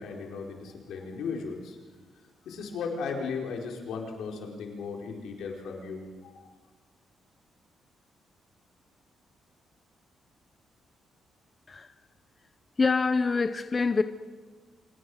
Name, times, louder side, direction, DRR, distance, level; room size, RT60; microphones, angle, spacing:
voice 1, 0.0-1.8 2.4-6.5, left 5 dB, 85° left, 4.7 m, -36 dB
voice 2, 12.8-14.0, left 4 dB, 25° left, 0.7 m, -25 dB
26.5 x 22.0 x 6.5 m
cardioid pair, 150°, 0 cm